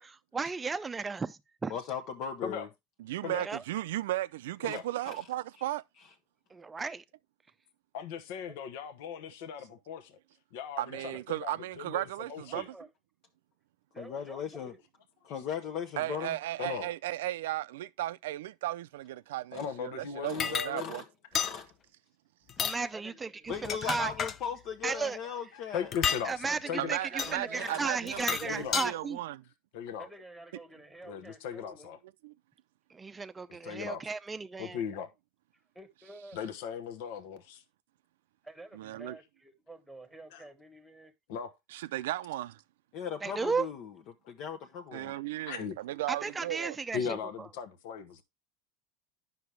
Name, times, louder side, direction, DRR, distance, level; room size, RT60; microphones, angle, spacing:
voice 1, 0.3-1.7 3.4-3.6 6.5-7.0 22.6-24.1 24.8-25.2 26.2-29.2 32.9-34.8 43.2-43.7 46.1-47.2, right 4 dB, 15° right, 0.5 m, -34 dB
voice 2, 1.7-2.7 4.7-4.8 5.0-5.2 14.0-14.7 15.2-16.4 19.5-19.6 20.2-20.5 20.8-21.0 21.4-21.7 23.5-25.9 27.2-28.4 42.9-43.9 44.3-45.1, left 7 dB, 50° left, 0.9 m, -38 dB
voice 3, 3.0-5.8 10.8-12.6 16.0-21.0 26.8-29.4 32.2-32.3 38.8-39.2 41.7-42.6 44.9-46.8, right 15 dB, 85° right, 0.5 m, -35 dB
voice 4, 7.9-10.2 10.5-11.5 11.8-12.7 16.6-16.9 19.5-20.9 25.5-26.9 28.4-29.0 29.7-30.1 31.0-32.0 33.6-34.0 34.6-35.1 36.3-37.6 40.3-40.4 41.3-41.5 43.4-43.5 44.9-45.1 45.5-45.8 46.9-48.2, left 7 dB, 70° left, 1.1 m, -38 dB
voice 5, 10.9-11.2 12.5-12.9 13.9-14.8 22.9-23.4 26.5-27.7 30.0-31.9 35.7-36.4 38.4-41.1, right 2 dB, ahead, 1.5 m, -50 dB
sound 1, 20.4-20.7 21.3-21.6 22.5-22.8 23.5-24.4 25.9-26.3 27.2-27.3 28.1-28.9, left 7 dB, 35° left, 0.5 m, -31 dB
9.5 x 6.0 x 3.3 m
supercardioid pair, 130°, 0 cm